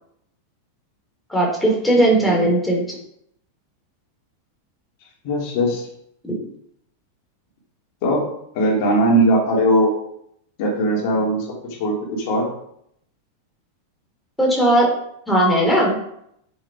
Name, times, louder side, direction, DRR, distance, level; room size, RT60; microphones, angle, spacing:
voice 1, 1.3-3.0 6.3-6.4 14.4-14.9 15.3-16.0, right 1 dB, 5° left, -2 dB, 3.3 m, -17 dB
voice 2, 5.2-5.9 8.0-8.3 8.5-9.9 10.6-12.5, right 1 dB, 45° left, -1 dB, 2.8 m, -19 dB
7.7 x 6.8 x 4.8 m, 0.73 s
figure-of-eight pair, 90°, 0 cm